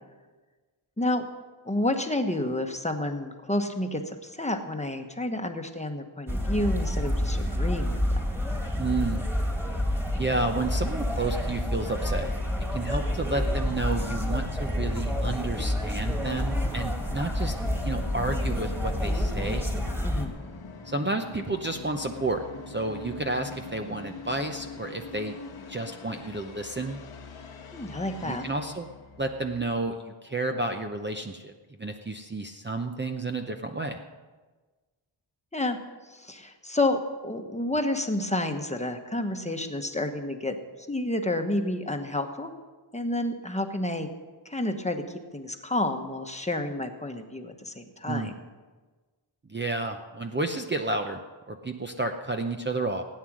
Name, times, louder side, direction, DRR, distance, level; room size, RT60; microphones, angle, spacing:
voice 1, 1.6-8.2 20.0-20.4 27.7-28.5 35.5-35.8 36.1-40.6 40.9-42.5 42.9-44.1 44.4-45.0 45.3-48.3, left 1 dB, 15° left, 5 dB, 1.1 m, -30 dB
sound 1, 6.3-20.3, left 1 dB, 5° right, 2.0 m, -28 dB
voice 2, 8.8-9.2 10.1-12.3 12.7-17.5 17.8-19.7 20.8-25.4 25.7-27.0 28.2-28.9 29.2-31.5 31.8-34.0 48.1-48.3 49.5-51.2 51.5-53.0, right 2 dB, 25° right, 4 dB, 0.7 m, -31 dB
Musical instrument, 16.2-29.9, left 5 dB, 80° left, 1.5 m, -43 dB
17.0 x 9.4 x 6.2 m, 1.3 s
wide cardioid pair, 135°, 48 cm